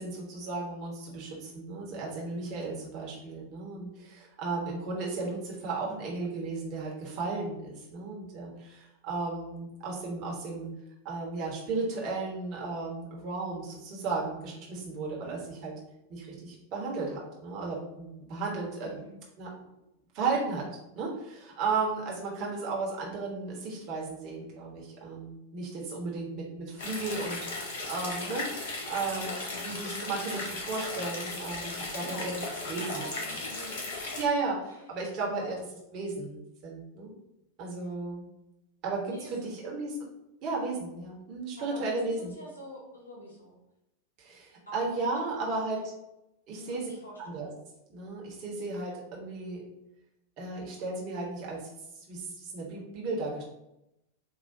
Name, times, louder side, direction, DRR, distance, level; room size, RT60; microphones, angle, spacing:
voice 1, 0.0-10.7 11.0-15.7 16.1-19.0 19.4-19.5 20.1-20.6 20.9-32.4 32.7-33.0 34.2-35.6 35.9-37.1 37.6-38.2 38.8-40.0 40.4-42.3 44.2-45.8 46.5-46.9 47.3-47.5 47.9-49.6 50.4-51.6 52.1-53.4, right 3 dB, 40° right, -3 dB, 1.3 m, -34 dB
voice 2, 18.8-19.2 32.0-32.3 32.7-34.2 35.3-35.5 39.0-39.6 41.6-43.6 44.7-45.8 46.5-47.3, left 1 dB, 80° left, -3 dB, 1.3 m, -46 dB
sound 1, 26.8-34.2, left 2 dB, 55° left, 1.0 m, -36 dB
4.7 x 2.7 x 2.7 m, 0.87 s
figure-of-eight pair, 90°, 0 cm